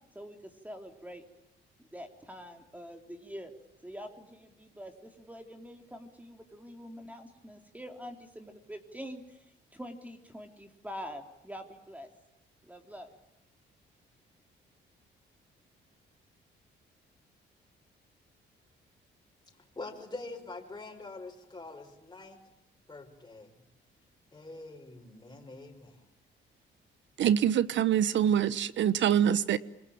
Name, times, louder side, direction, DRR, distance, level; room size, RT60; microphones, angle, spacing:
voice 1, 0.2-1.3 1.8-3.5 3.8-12.1 12.6-13.1, equal, 5° right, 3.3 m, -45 dB
voice 2, 19.8-22.4 22.9-23.5 24.3-26.0, left 3 dB, 20° left, 5.6 m, -44 dB
voice 3, 27.2-29.6, right 9 dB, 70° right, 1.2 m, -25 dB
27.5 x 22.0 x 8.8 m
cardioid pair, 90°, 20 cm